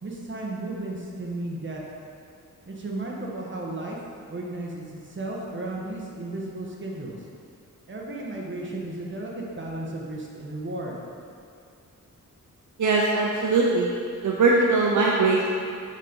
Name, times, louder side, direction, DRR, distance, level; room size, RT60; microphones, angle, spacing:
voice 1, 0.0-1.8 2.7-4.0 4.3-7.2 7.9-10.9, right 2 dB, 35° right, -3 dB, 1.3 m, -34 dB
voice 2, 12.8-13.9 14.2-15.4, right 3 dB, 65° right, -3 dB, 0.7 m, -21 dB
7.3 x 4.0 x 5.3 m, 2.5 s
wide cardioid pair, 100°, 33 cm